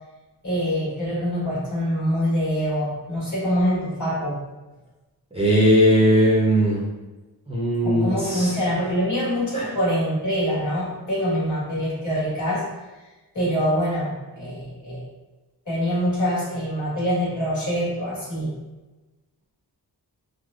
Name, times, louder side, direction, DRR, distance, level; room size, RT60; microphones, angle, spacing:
voice 1, 0.4-4.4 7.8-12.7 13.3-15.0 15.6-18.5, equal, 45° left, -9 dB, 1.4 m, -24 dB
voice 2, 5.3-6.8 7.5-8.5 9.5-9.7, equal, 15° right, -8 dB, 0.9 m, -19 dB
3.2 x 2.1 x 2.5 m, 1.1 s
wide cardioid pair, 60°, 41 cm